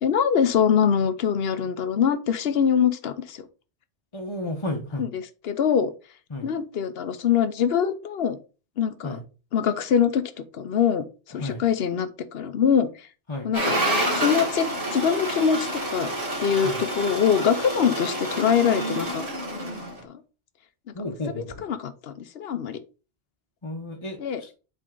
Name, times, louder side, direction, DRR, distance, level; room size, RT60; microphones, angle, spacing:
voice 1, 0.0-3.4 5.0-5.9 6.4-8.4 8.8-9.2 9.5-10.2 10.5-13.1 13.4-13.8 14.1-16.1 16.4-19.2 20.0-20.2 21.0-22.8 24.2-24.4, left 7 dB, 70° left, 12 dB, 0.9 m, -24 dB
voice 2, 4.1-5.0 6.3-6.5 9.0-9.2 11.4-11.6 13.3-13.5 16.6-16.8 20.9-21.7 23.6-24.5, left 1 dB, 30° left, 0 dB, 0.9 m, -33 dB
sound 1, 13.5-20.0, right 1 dB, 35° right, 2.5 m, -28 dB
7.7 x 3.7 x 3.8 m, 0.34 s
omnidirectional pair, 1.1 m